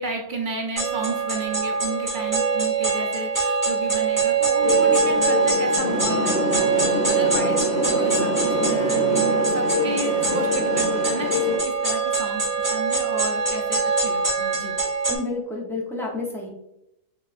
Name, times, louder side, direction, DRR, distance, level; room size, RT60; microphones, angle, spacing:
voice 1, 0.0-14.7, right 3 dB, 65° right, 1 dB, 0.5 m, -32 dB
sound 1, 0.8-15.2, right 5 dB, 15° right, 0.9 m, -23 dB
sound 2, 4.6-11.6, left 3 dB, 60° left, 0.9 m, -26 dB
voice 2, 15.1-16.5, left 3 dB, 5° left, -4 dB, 0.5 m, -30 dB
6.5 x 2.3 x 2.4 m, 0.87 s
omnidirectional pair, 1.3 m